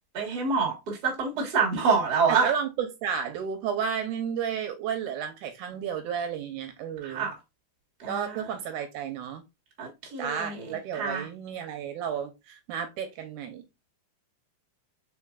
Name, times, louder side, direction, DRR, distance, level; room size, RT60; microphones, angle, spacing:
voice 1, 0.1-2.5 7.0-7.3 8.0-8.5 9.8-11.2, right 5 dB, 40° right, 1.5 m, -27 dB
voice 2, 2.3-7.3 8.1-9.4 10.2-13.6, right 7 dB, 85° right, 2.2 m, -32 dB
4.6 x 4.5 x 2.4 m
omnidirectional pair, 3.6 m